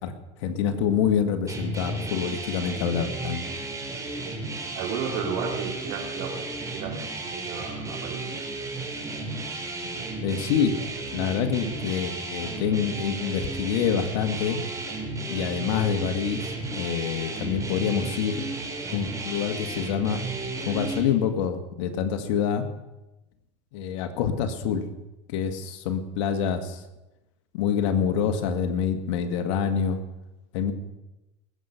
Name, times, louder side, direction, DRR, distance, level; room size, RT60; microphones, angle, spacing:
voice 1, 0.4-3.4 10.2-10.8 11.1-14.6 15.3-18.5 18.9-20.2 20.6-22.6 23.7-24.8 25.3-26.8 27.5-30.0 30.5-30.7, left 7 dB, 75° left, 8 dB, 1.8 m, -26 dB
sound 1, 1.5-21.0, right 2 dB, 20° right, 3.8 m, -34 dB
voice 2, 4.7-6.3 6.7-8.3, right 6 dB, 65° right, 1 dB, 4.1 m, -33 dB
20.0 x 8.2 x 5.8 m, 0.98 s
supercardioid pair, 115°, 16 cm